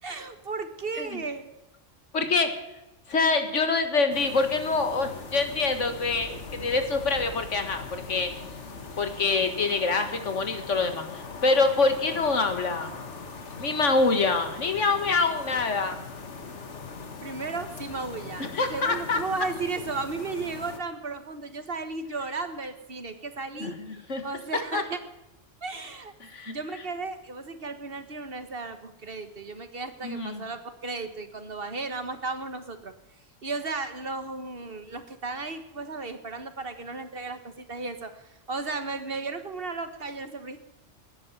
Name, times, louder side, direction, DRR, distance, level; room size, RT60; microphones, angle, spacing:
voice 1, 0.0-1.5 17.2-23.8 24.2-25.0 25.6-26.1 26.4-32.9 33.4-40.6, right 3 dB, 50° right, 9 dB, 1.6 m, -35 dB
voice 2, 2.1-2.5 3.1-8.3 9.0-12.9 13.6-16.0 18.4-19.2 23.6-23.7 24.1-24.2 24.7-24.8 26.2-26.6 30.0-30.4, left 3 dB, 90° left, 7 dB, 2.1 m, -25 dB
sound 1, 4.1-20.8, left 4 dB, 75° left, 1.8 m, -41 dB
13.0 x 10.0 x 9.4 m, 0.95 s
omnidirectional pair, 1.2 m